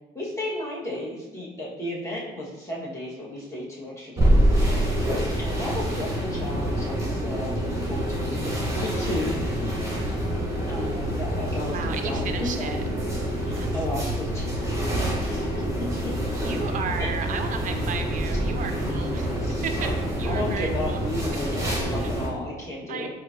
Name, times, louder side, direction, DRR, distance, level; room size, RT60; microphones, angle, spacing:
voice 1, 0.1-5.0 5.4-9.4 10.7-12.9 13.4-15.5 16.4-16.5 17.0-17.1 17.9-18.0 18.6-19.6 20.2-23.1, left 1 dB, 15° left, -6 dB, 1.3 m, -34 dB
sound 1, 4.2-22.3, equal, 15° right, 1.1 m, -26 dB
voice 2, 9.8-10.2 11.6-12.8 13.5-13.8 16.3-19.3 19.6-19.9 20.2-21.0 22.0-22.1 22.9-23.1, right 6 dB, 40° right, 6 dB, 0.4 m, -34 dB
4.4 x 2.3 x 2.6 m, 1.0 s
supercardioid pair, 80°, 21 cm